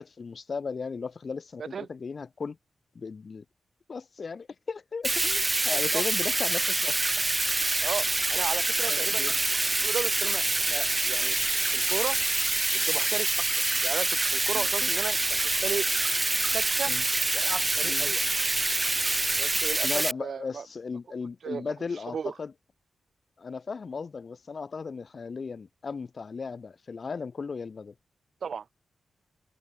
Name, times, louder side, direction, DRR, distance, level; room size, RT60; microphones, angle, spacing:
voice 1, 0.0-2.6 3.0-3.4 3.9-7.3 8.8-9.4 14.5-14.9 16.9-17.0 17.8-18.1 19.8-22.5 23.4-27.9, left 5 dB, 40° left, 3.5 m, -36 dB
Bathtub (filling or washing), 5.0-20.1, right 2 dB, 20° right, 0.5 m, -26 dB
voice 2, 7.8-9.4 9.6-11.4 11.7-12.2 12.7-13.3 13.8-15.9 16.5-16.9 17.3-18.2 19.4-20.7 21.4-21.7 22.1-22.3 28.4-28.6, right 6 dB, 55° right, 3.8 m, -35 dB
wide cardioid pair, 150°, 0 cm